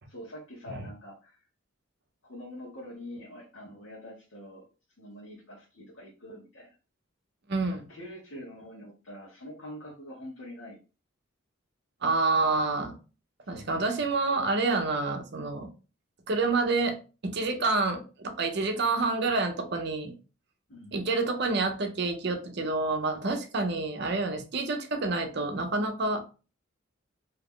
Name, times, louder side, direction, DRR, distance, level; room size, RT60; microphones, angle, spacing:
voice 1, 0.1-1.4 2.2-4.6 5.0-6.7 7.7-10.8 13.4-14.1 20.7-20.9, left 1 dB, 65° left, 1.1 m, -45 dB
voice 2, 7.5-7.8 12.0-13.0 13.5-15.7 16.3-17.0 17.2-20.1 20.9-26.2, right 3 dB, 55° right, 0.6 m, -28 dB
2.9 x 2.4 x 3.6 m
head